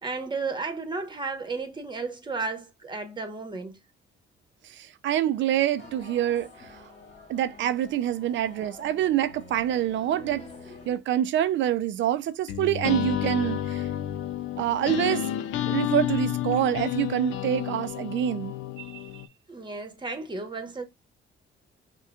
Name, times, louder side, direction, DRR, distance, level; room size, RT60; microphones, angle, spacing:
voice 1, 0.0-3.8 19.5-20.9, right 4 dB, 25° right, 1.1 m, -33 dB
voice 2, 4.8-6.5 7.3-10.5 10.9-13.8 14.6-15.2 15.7-19.0, right 11 dB, 70° right, 0.4 m, -26 dB
sound 1, 5.8-11.0, left 3 dB, 35° left, 1.9 m, -47 dB
sound 2, 12.5-19.3, left 12 dB, 90° left, 0.5 m, -30 dB
5.6 x 2.3 x 2.3 m
cardioid pair, 90°, 20 cm